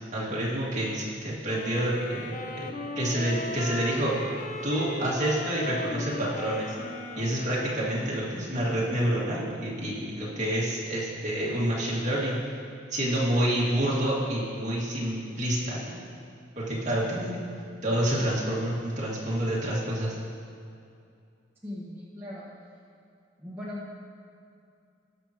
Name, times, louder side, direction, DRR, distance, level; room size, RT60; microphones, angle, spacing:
voice 1, 0.1-2.5 3.0-4.2 4.6-6.8 7.1-12.4 12.9-16.0 16.6-17.4 17.8-20.1, right 1 dB, 40° right, -6 dB, 2.1 m, -28 dB
sound 1, 1.5-8.0, left 2 dB, 40° left, 0.7 m, -37 dB
voice 2, 21.6-22.5 23.4-23.9, left 1 dB, 10° right, -8 dB, 1.5 m, -38 dB
19.0 x 6.5 x 3.0 m, 2.4 s
head